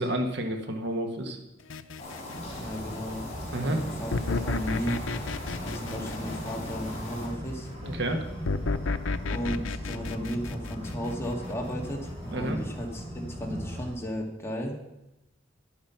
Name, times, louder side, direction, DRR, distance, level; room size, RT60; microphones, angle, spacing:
voice 1, 0.0-1.4 3.5-3.8 7.8-8.2 12.3-12.6, right 1 dB, 60° right, 4 dB, 1.6 m, -29 dB
sound 1, 1.7-2.9 4.1-7.2 8.5-11.7, left 3 dB, 85° left, 0.7 m, -32 dB
sound 2, 2.0-7.3, left 1 dB, 35° left, 4.4 m, -40 dB
sound 3, 2.3-13.9, equal, 30° right, 5.3 m, -39 dB
voice 2, 2.5-3.2 3.6-5.0 5.6-7.7 9.3-14.8, equal, 15° left, 0 dB, 2.1 m, -34 dB
11.0 x 10.5 x 5.8 m, 0.93 s
head